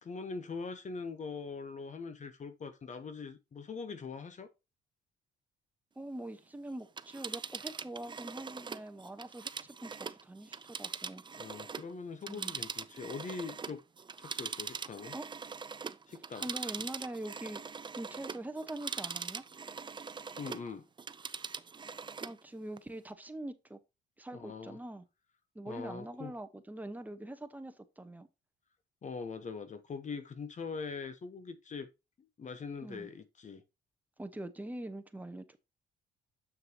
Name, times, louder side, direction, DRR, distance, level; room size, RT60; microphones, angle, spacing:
voice 1, 0.0-4.5 11.4-13.8 14.2-15.1 16.1-16.5 20.4-20.9 24.3-24.8 25.7-26.3 29.0-31.9 32.2-33.6, left 5 dB, 40° left, 1.0 m, -42 dB
voice 2, 6.0-11.2 12.3-12.6 15.1-15.2 16.4-17.6 17.9-19.4 22.2-23.8 24.2-25.0 25.5-28.3 32.8-33.1 34.2-35.6, right 1 dB, 10° right, 1.1 m, -43 dB
Telephone, 6.8-11.9 12.2-20.7 21.0-22.4 22.8-22.9, right 5 dB, 25° right, 0.5 m, -42 dB
7.0 x 6.6 x 2.9 m
cardioid pair, 100°, 19 cm